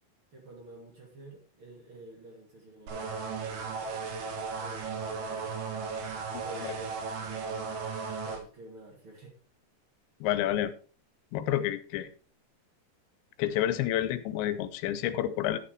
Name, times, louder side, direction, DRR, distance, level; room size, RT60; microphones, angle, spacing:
voice 1, 0.3-4.0 4.6-5.6 6.4-7.8 8.2-9.3, right 1 dB, 35° right, -1 dB, 2.5 m, -50 dB
sound 1, 2.9-8.4, right 5 dB, 55° right, 3.0 m, -36 dB
voice 2, 10.2-10.7 11.3-12.1 13.4-15.6, left 12 dB, 90° left, 13 dB, 3.1 m, -29 dB
11.5 x 7.1 x 4.6 m, 0.39 s
omnidirectional pair, 5.1 m